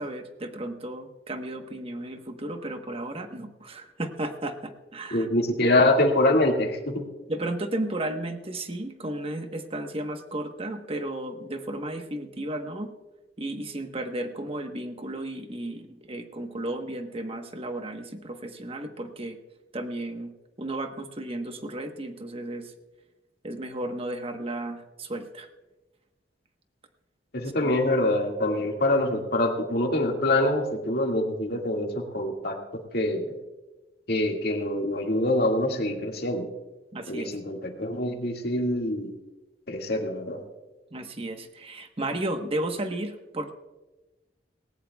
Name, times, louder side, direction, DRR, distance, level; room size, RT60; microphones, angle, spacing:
voice 1, 0.0-5.3 7.3-12.9 13.4-19.4 19.7-20.3 20.6-22.7 23.4-25.5 27.6-27.7 36.9-37.4 40.9-43.5, right 1 dB, 35° right, 6 dB, 1.2 m, -34 dB
voice 2, 5.1-7.1 27.3-33.3 34.1-36.5 37.1-39.1 39.7-40.4, left 1 dB, 60° left, 2 dB, 2.0 m, -25 dB
18.5 x 18.5 x 2.3 m, 1.1 s
head